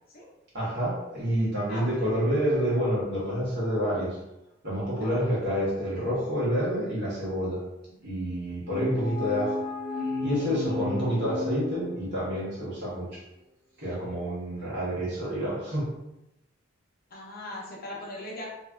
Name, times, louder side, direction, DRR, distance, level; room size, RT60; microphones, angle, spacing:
voice 1, 0.5-4.2 4.6-7.6 8.0-9.6 10.2-13.2 13.8-15.9, equal, 55° right, -8 dB, 1.4 m, -28 dB
voice 2, 1.7-2.0 5.0-5.3 17.1-18.5, left 1 dB, 50° left, -3 dB, 0.8 m, -39 dB
sound 1, 8.6-12.4, left 3 dB, 5° right, 1.3 m, -33 dB
3.1 x 2.6 x 2.3 m, 0.92 s
head